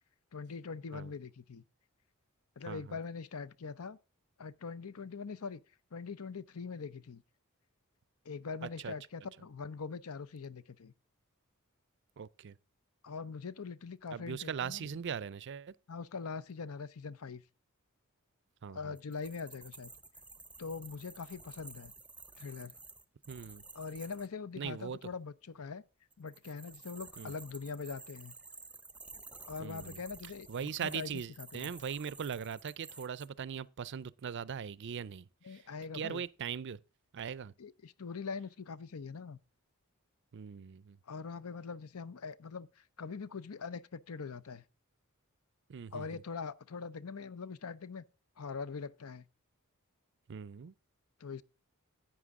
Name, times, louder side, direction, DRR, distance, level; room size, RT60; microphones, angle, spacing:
voice 1, 0.3-1.6 2.6-4.0 4.4-5.6 5.9-7.2 8.2-10.9 13.0-14.9 15.9-17.4 18.7-19.9 20.6-21.9 22.4-22.7 23.7-25.8 26.2-28.3 29.5-31.1 31.4-31.7 35.4-36.2 37.6-39.4 41.1-44.6 45.9-48.0 48.4-49.2 51.2-51.4, left 5 dB, 80° left, 0.7 m, -42 dB
voice 2, 2.6-3.0 8.6-8.9 12.2-12.6 14.1-15.7 18.6-19.0 23.3-23.6 24.6-25.0 27.2-27.3 29.6-30.0 30.5-35.6 35.9-36.8 37.1-37.5 40.3-41.0 45.7-46.2 50.3-50.7, right 7 dB, 55° right, 0.4 m, -40 dB
sound 1, 19.0-24.3 26.1-33.3, right 3 dB, 5° right, 0.6 m, -52 dB
11.0 x 8.8 x 3.6 m
head